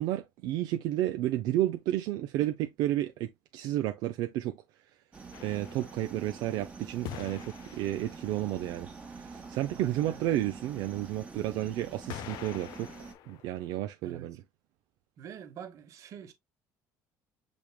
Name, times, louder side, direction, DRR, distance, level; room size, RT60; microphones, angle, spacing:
voice 1, 0.0-4.6 5.4-8.9 9.1-12.9 13.3-14.4, right 14 dB, 75° right, 0.5 m, -31 dB
sound 1, 5.1-13.1, right 4 dB, 20° right, 1.1 m, -46 dB
sound 2, 5.3-6.5 7.0-8.6 10.9-11.0 12.1-13.7, left 12 dB, 65° left, 0.5 m, -45 dB
voice 2, 9.7-10.2 14.0-14.3 15.2-16.3, right 9 dB, 50° right, 1.1 m, -46 dB
6.1 x 3.5 x 2.2 m
cardioid pair, 150°, 7 cm